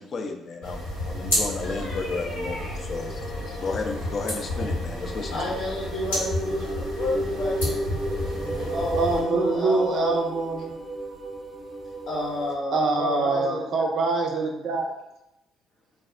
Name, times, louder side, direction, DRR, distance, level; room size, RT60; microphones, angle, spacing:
voice 1, 0.0-5.6, left 4 dB, 45° left, 0.4 m, -33 dB
sound 1, 0.6-9.2, left 1 dB, 85° left, 1.1 m, -31 dB
voice 2, 1.6-2.8 5.3-7.8 8.7-10.2 12.1-13.9, left 1 dB, 70° left, 0.8 m, -31 dB
sound 2, 1.6-2.8 3.3-3.4 4.2-4.3 4.6-4.7 5.1-12.6, right 1 dB, 5° right, 0.6 m, -33 dB
voice 3, 9.0-10.7 12.7-14.8, right 3 dB, 55° right, 0.4 m, -25 dB
3.3 x 2.0 x 2.4 m
figure-of-eight pair, 45°, 0 cm